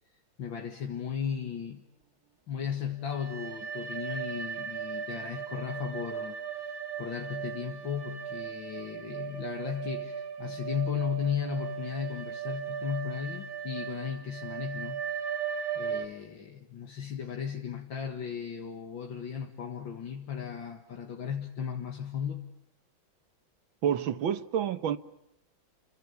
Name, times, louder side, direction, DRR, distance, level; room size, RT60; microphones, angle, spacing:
voice 1, 0.4-1.8 2.5-15.0 15.5-22.5, left 8 dB, 70° left, 2.6 m, -36 dB
sound 1, 3.0-16.1, right 7 dB, 45° right, 3.2 m, -37 dB
voice 2, 23.8-25.0, right 9 dB, 80° right, 2.0 m, -28 dB
29.5 x 24.0 x 7.0 m
omnidirectional pair, 2.2 m